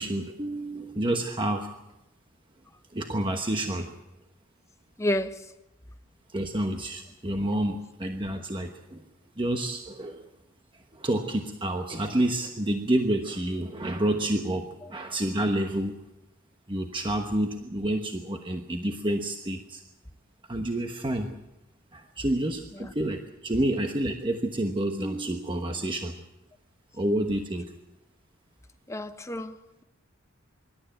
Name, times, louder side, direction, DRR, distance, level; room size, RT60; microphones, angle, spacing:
voice 1, 0.0-1.7 2.9-3.9 6.3-9.0 9.4-10.3 10.9-16.0 16.7-19.8 20.5-21.4 21.9-26.1 26.9-27.7, right 1 dB, 25° right, 1.1 m, -29 dB
voice 2, 5.0-5.5 22.8-22.9 28.9-29.8, left 1 dB, 15° left, 0.9 m, -30 dB
24.5 x 12.5 x 9.0 m
head